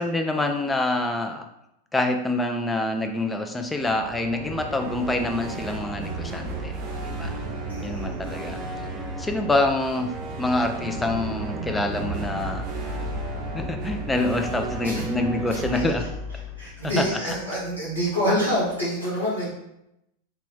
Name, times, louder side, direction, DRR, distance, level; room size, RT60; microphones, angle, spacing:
voice 1, 0.0-1.5 1.9-7.4 7.8-8.6 9.2-12.7 13.5-16.1 16.8-17.3, left 2 dB, 10° left, 5 dB, 0.4 m, -26 dB
sound 1, 3.7-17.7, right 2 dB, 35° right, 0.6 m, -33 dB
voice 2, 7.7-8.0 14.8-15.0 15.5-15.9 16.6-19.5, equal, 85° left, -10 dB, 1.4 m, -27 dB
3.2 x 2.5 x 3.5 m, 0.84 s
figure-of-eight pair, 90°, 0 cm